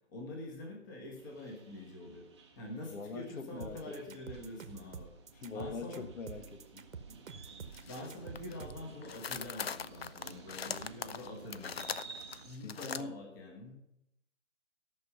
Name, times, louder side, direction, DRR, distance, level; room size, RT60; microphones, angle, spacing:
voice 1, 0.1-2.3 2.6-6.1 7.8-13.7, left 1 dB, 15° left, 0 dB, 1.2 m, -46 dB
sound 1, 1.2-12.6, right 4 dB, 20° right, 0.8 m, -54 dB
voice 2, 2.9-4.2 5.3-6.9 12.6-13.2, left 4 dB, 75° left, 8 dB, 1.6 m, -43 dB
sound 2, 3.6-8.9, right 6 dB, 80° right, 1.2 m, -47 dB
sound 3, 7.7-8.1 8.4-8.7 9.0-13.0, left 7 dB, 50° left, 0.5 m, -41 dB
13.0 x 6.2 x 5.8 m, 0.80 s
hypercardioid pair, 170°, 40 cm